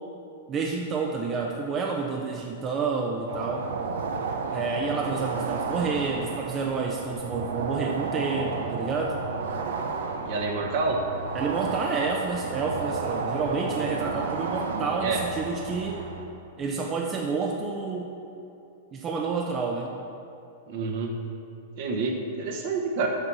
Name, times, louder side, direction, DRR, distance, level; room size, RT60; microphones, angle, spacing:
voice 1, 0.5-3.7 4.5-9.2 11.3-16.1 16.6-18.2 18.9-19.9, right 4 dB, 30° right, 0 dB, 0.7 m, -29 dB
sound 1, 3.3-16.3, right 4 dB, 75° right, 0.8 m, -32 dB
voice 2, 10.2-11.0 15.0-15.2 20.7-21.1 21.8-23.1, right 4 dB, 55° right, 1 dB, 1.3 m, -28 dB
6.6 x 6.0 x 6.2 m, 2.9 s
hypercardioid pair, 110°, 0 cm